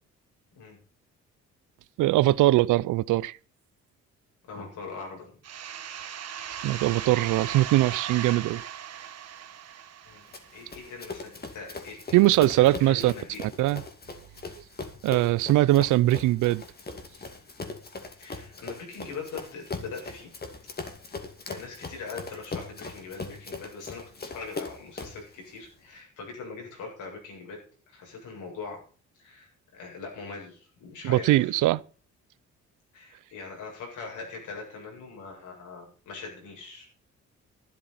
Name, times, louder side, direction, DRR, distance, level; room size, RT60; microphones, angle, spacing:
voice 1, 2.0-3.3 6.6-8.6 12.1-13.1 13.4-13.8 15.0-16.6 31.0-31.8, right 16 dB, 85° right, 0.6 m, -21 dB
voice 2, 4.5-5.3 10.1-10.3 10.5-12.2 12.6-13.4 18.2-20.3 21.5-27.6 27.9-28.8 29.1-31.6 32.9-36.9, left 4 dB, 80° left, 7.4 m, -41 dB
sound 1, 5.4-11.0, right 9 dB, 55° right, 1.4 m, -38 dB
Run, 10.3-25.3, left 3 dB, 30° left, 2.5 m, -40 dB
12.0 x 10.0 x 5.7 m
cardioid pair, 90°, 30 cm